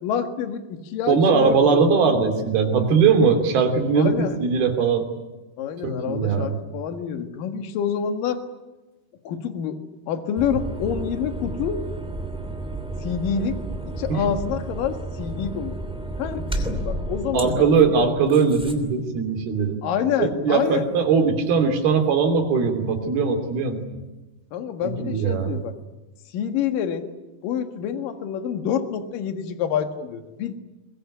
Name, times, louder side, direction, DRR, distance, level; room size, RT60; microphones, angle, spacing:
voice 1, 0.0-1.8 4.0-4.4 5.6-8.4 9.2-9.8 10.1-11.8 13.0-13.6 13.9-15.8 16.2-17.7 19.8-20.8 24.5-25.7 26.3-27.1 27.4-30.5, left 8 dB, 60° left, 7 dB, 3.0 m, -27 dB
voice 2, 1.1-5.1 5.8-6.5 14.1-14.2 17.3-19.8 20.2-23.8 24.8-25.6, right 5 dB, 65° right, 6 dB, 4.7 m, -20 dB
sound 1, 10.3-18.7, right 1 dB, ahead, 1.9 m, -32 dB
22.5 x 22.5 x 10.0 m, 1.1 s
omnidirectional pair, 4.8 m